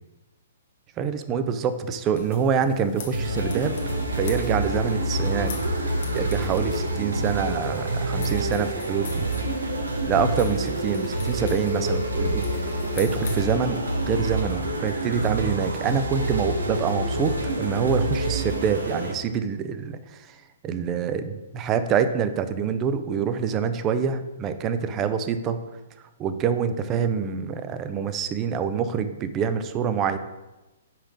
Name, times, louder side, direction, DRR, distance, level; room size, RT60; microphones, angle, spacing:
voice 1, 1.0-3.7 4.1-5.5 6.1-9.3 10.1-12.4 12.9-13.8 14.0-20.0 20.6-25.6 26.2-30.2, right 7 dB, 25° right, 10 dB, 0.5 m, -26 dB
sound 1, 2.1-13.5, left 6 dB, 55° left, 1.1 m, -44 dB
sound 2, 3.1-19.1, right 1 dB, 85° right, 1.2 m, -27 dB
5.6 x 5.0 x 5.2 m, 1.1 s
figure-of-eight pair, 125°, 0 cm